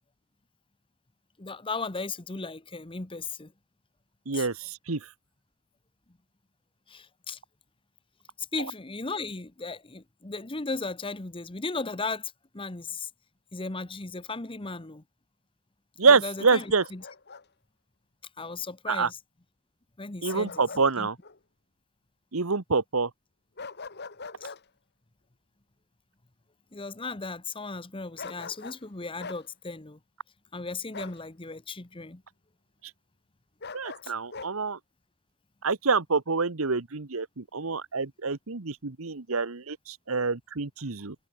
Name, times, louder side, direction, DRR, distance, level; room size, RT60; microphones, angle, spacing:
voice 1, 1.4-3.5 4.3-4.5 6.9-7.4 8.4-13.1 13.5-15.0 16.0-17.0 18.4-19.2 20.0-21.1 24.4-24.5 26.7-30.0 30.5-32.2 34.0-34.1, left 3 dB, 25° left, 1.1 m, -36 dB
voice 2, 4.3-5.0 16.0-16.8 18.9-19.1 20.2-21.2 22.3-23.1 33.7-34.8 35.6-41.1, right 4 dB, 70° right, 1.2 m, -26 dB
Bark, 16.4-17.4 20.3-20.9 21.2-21.4 23.6-24.6 28.2-28.8 29.2-29.4 30.9-31.2 33.6-34.5, left 4 dB, 50° left, 2.0 m, -42 dB
head